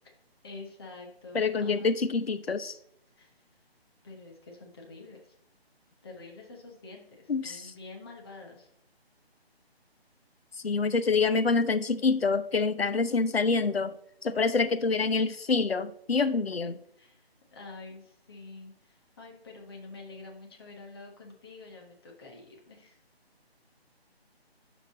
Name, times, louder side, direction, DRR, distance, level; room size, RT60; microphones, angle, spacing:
voice 1, 0.4-1.9 3.2-3.3 4.0-5.3 6.0-8.7 17.0-23.0, left 3 dB, 25° left, 0 dB, 1.4 m, -47 dB
voice 2, 1.3-2.8 7.3-7.7 10.6-13.9 14.2-16.8, left 4 dB, 70° left, 12 dB, 0.8 m, -26 dB
11.0 x 5.3 x 3.7 m, 0.71 s
figure-of-eight pair, 155°, 32 cm